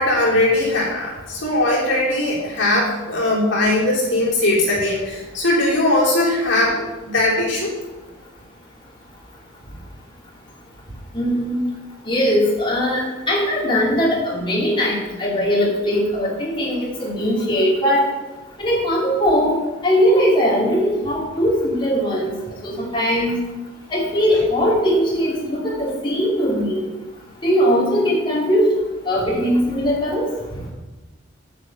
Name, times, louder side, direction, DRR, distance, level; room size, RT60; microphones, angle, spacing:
voice 1, 0.0-7.7, left 1 dB, 65° left, -5 dB, 3.5 m, -20 dB
voice 2, 11.1-11.6 12.0-18.1 18.6-22.3 22.6-23.4 23.9-26.9 27.4-28.7 29.0-30.3, equal, 25° left, -4 dB, 2.7 m, -20 dB
9.1 x 5.0 x 7.5 m, 1.2 s
head